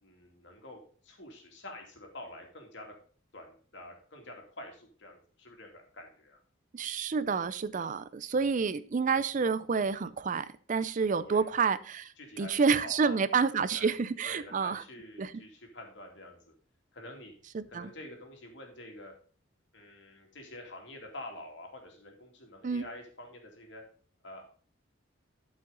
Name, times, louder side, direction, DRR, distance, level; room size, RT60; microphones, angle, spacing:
voice 1, 0.0-2.9 3.3-6.4 11.2-11.4 12.2-12.5 12.8-13.2 13.7-13.9 14.2-16.5 16.9-17.3 17.7-19.1 19.7-23.8 24.2-24.4, left 1 dB, 65° left, 2 dB, 2.6 m, -47 dB
voice 2, 6.7-14.8 15.2-15.3 17.5-17.9 22.6-22.9, right 5 dB, 40° right, 15 dB, 0.4 m, -29 dB
12.0 x 5.6 x 3.9 m, 0.44 s
head